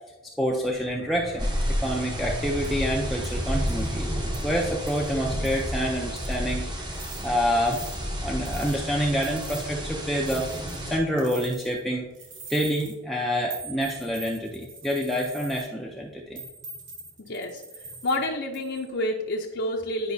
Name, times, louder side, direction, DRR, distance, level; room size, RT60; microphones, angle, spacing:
voice 1, 0.4-1.5 1.8-4.1 4.4-7.8 8.2-12.1 12.5-16.4, equal, ahead, -2 dB, 0.5 m, -27 dB
sound 1, 0.6-12.1, left 1 dB, 45° right, 1.2 m, -40 dB
sound 2, 1.4-11.0, equal, 20° right, 0.9 m, -31 dB
sound 3, 2.6-2.8 3.2-3.3 3.7-3.9 4.3-4.4 4.9-5.1 5.4-5.7 6.2-6.5 6.9-7.2 7.7-8.0 8.5-8.8 9.2-9.7 10.2-10.8 11.2-11.8 12.1-12.9 13.5-15.7 16.4-18.2 18.5-18.9, right 4 dB, 60° right, 1.5 m, -43 dB
voice 2, 17.2-17.6 18.0-20.1, left 1 dB, 55° left, 0 dB, 0.6 m, -29 dB
10.5 x 5.3 x 2.7 m, 1.2 s
head